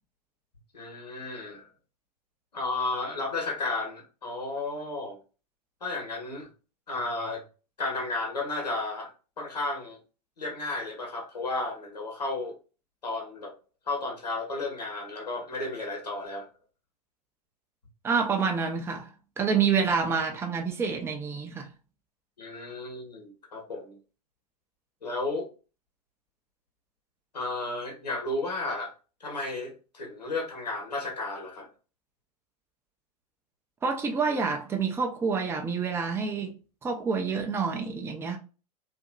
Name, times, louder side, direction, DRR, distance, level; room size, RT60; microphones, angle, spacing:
voice 1, 0.7-1.7 2.5-5.2 5.8-6.5 6.9-7.4 7.8-10.0 10.4-12.6 13.0-13.5 13.8-16.5 22.4-24.0 25.0-25.5 27.3-28.9 29.2-31.7, left 2 dB, 85° left, 1.1 m, -33 dB
voice 2, 18.0-19.1 19.4-21.7 33.8-36.5 36.8-38.4, right 5 dB, 10° right, 0.5 m, -27 dB
2.7 x 2.6 x 2.2 m
figure-of-eight pair, 100°, 20 cm